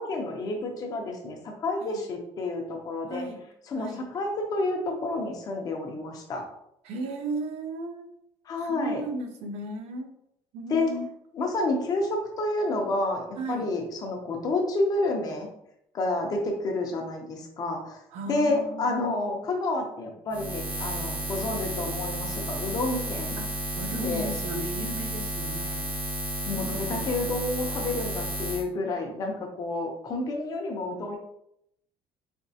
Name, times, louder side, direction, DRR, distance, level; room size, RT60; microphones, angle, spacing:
voice 1, 0.0-3.2 3.7-3.9 4.1-6.4 8.5-9.0 10.7-10.9 11.4-15.5 15.9-18.0 18.3-23.4 24.0-24.3 26.5-31.2, left 2 dB, 35° left, 2 dB, 0.7 m, -29 dB
voice 2, 3.1-3.5 3.7-4.1 6.8-8.1 8.6-10.1 10.5-11.1 13.4-13.7 18.1-19.4 23.4-26.0 26.5-27.1, right 1 dB, 70° right, 5 dB, 0.6 m, -36 dB
Buzz, 20.3-28.6, right 1 dB, 15° right, 0.6 m, -32 dB
4.3 x 2.9 x 2.7 m, 0.76 s
cardioid pair, 180°, 11 cm